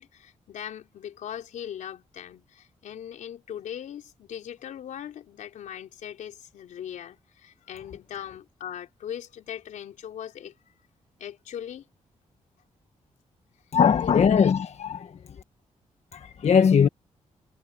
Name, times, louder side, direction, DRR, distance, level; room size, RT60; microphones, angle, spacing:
voice 1, 0.0-10.7 11.2-11.9 14.0-14.4, left 10 dB, 85° left, 4.0 m, -39 dB
voice 2, 13.7-15.4 16.1-16.9, left 7 dB, 60° left, 1.3 m, -21 dB
cardioid pair, 85°, 13 cm